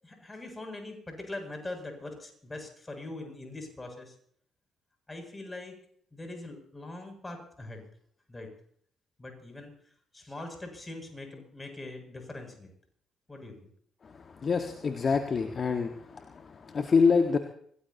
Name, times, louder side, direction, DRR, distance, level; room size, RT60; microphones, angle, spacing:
voice 1, 0.0-4.1 5.1-5.8 6.1-7.9 8.3-8.5 9.2-9.7 10.1-12.7 13.3-13.7, left 2 dB, 20° left, 4 dB, 7.7 m, -42 dB
voice 2, 14.4-16.2 16.7-17.4, left 5 dB, 45° left, 6 dB, 1.7 m, -25 dB
26.5 x 17.5 x 3.0 m, 0.62 s
hypercardioid pair, 45°, 0 cm